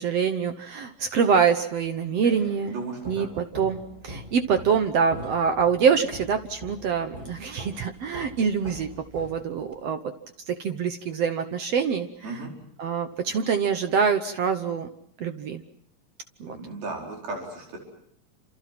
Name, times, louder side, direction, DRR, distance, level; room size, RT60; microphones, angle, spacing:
voice 1, 0.0-2.8 3.1-8.9 9.1-10.1 10.5-12.1 12.8-14.9 15.2-15.6 16.4-16.6, right 6 dB, 65° right, 8 dB, 1.7 m, -25 dB
sound 1, 1.8-9.9, equal, 15° right, 2.1 m, -43 dB
voice 2, 2.6-3.3 12.2-12.5 16.5-17.8, right 3 dB, 90° right, 0 dB, 6.7 m, -35 dB
28.5 x 27.5 x 6.0 m, 0.69 s
omnidirectional pair, 4.1 m